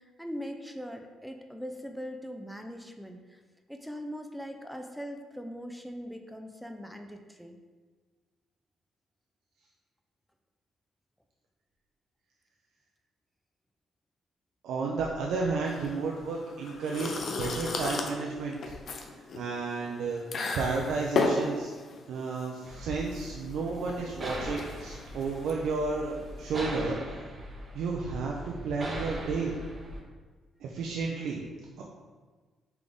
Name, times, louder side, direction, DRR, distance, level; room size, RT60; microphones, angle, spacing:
voice 1, 0.0-3.4 3.7-7.6, equal, ahead, 4 dB, 0.4 m, -41 dB
voice 2, 14.6-18.7 19.3-20.2 20.5-21.7 22.1-27.2 27.7-29.5 30.6-31.4 31.8-31.9, right 4 dB, 80° right, -2 dB, 0.4 m, -32 dB
sound 1, 15.7-26.6, left 3 dB, 55° left, 0.5 m, -35 dB
sound 2, 22.7-30.0, equal, 30° right, 0.7 m, -40 dB
3.9 x 3.4 x 3.4 m, 1.4 s
cardioid pair, 90°, 0 cm